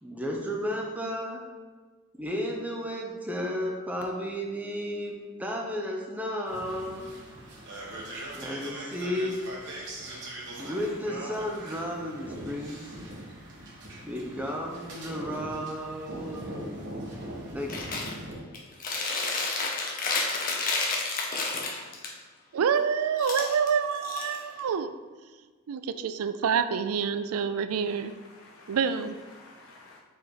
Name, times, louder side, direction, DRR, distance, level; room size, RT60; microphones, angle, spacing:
voice 1, 0.0-1.4 2.1-7.1 8.3-9.4 10.6-12.9 14.0-16.7 17.5-17.9, equal, 5° right, 0 dB, 0.7 m, -33 dB
sound 1, 6.5-18.4, right 1 dB, 55° right, 1.5 m, -41 dB
Chewing mastication, 17.7-18.1 18.5-22.1 23.2-24.7, left 3 dB, 40° left, 0.8 m, -30 dB
voice 2, 22.5-24.9 25.7-28.1 28.7-29.2, right 6 dB, 90° right, 11 dB, 0.4 m, -27 dB
voice 3, 27.7-30.0, left 2 dB, 70° left, -1 dB, 0.6 m, -53 dB
4.9 x 4.0 x 4.8 m, 1.4 s
head